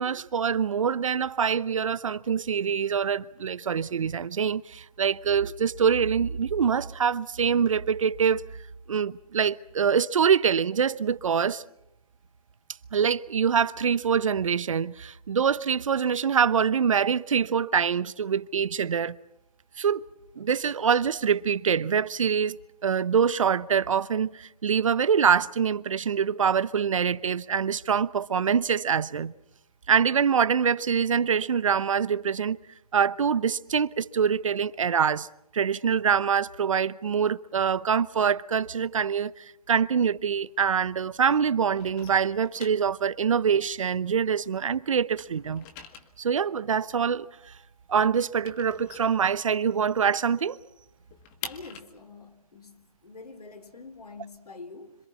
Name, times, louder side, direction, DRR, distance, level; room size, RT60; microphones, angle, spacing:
voice 1, 0.0-8.4 8.9-11.6 12.9-19.1 19.8-20.0 20.4-29.3 29.9-32.6 32.9-35.3 35.5-45.6 46.2-47.3 47.9-50.6, right 7 dB, 55° right, 1.0 m, -25 dB
sound 1, 39.7-41.1 41.4-44.6 44.9-49.9 50.2-50.3 50.6-54.4, left 7 dB, 20° left, 1.8 m, -46 dB
voice 2, 51.4-55.0, left 3 dB, 75° left, 4.1 m, -45 dB
26.5 x 26.5 x 5.9 m
hypercardioid pair, 150°, 20 cm